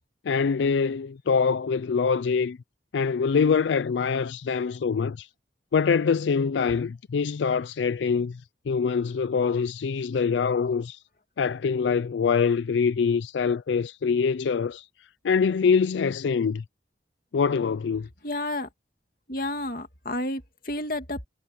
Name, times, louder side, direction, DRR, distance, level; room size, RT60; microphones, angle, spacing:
voice 1, 0.2-2.6 2.9-5.3 5.7-11.0 11.4-14.9 15.2-16.6 17.3-18.1, left 5 dB, 90° left, 0.4 m, -24 dB
voice 2, 18.2-18.7 19.3-21.3, left 1 dB, 50° left, 2.4 m, -31 dB
head